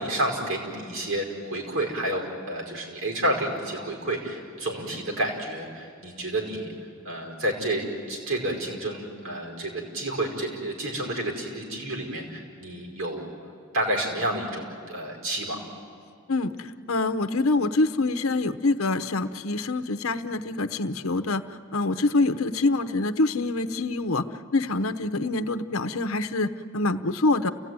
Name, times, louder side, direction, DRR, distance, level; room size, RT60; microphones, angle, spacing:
voice 1, 0.0-6.7 7.0-13.3 13.7-15.6, right 1 dB, 70° right, 1 dB, 5.2 m, -30 dB
voice 2, 16.3-21.4 21.7-24.3 24.5-27.5, left 2 dB, 80° left, 11 dB, 0.9 m, -25 dB
29.5 x 16.5 x 9.6 m, 2.3 s
head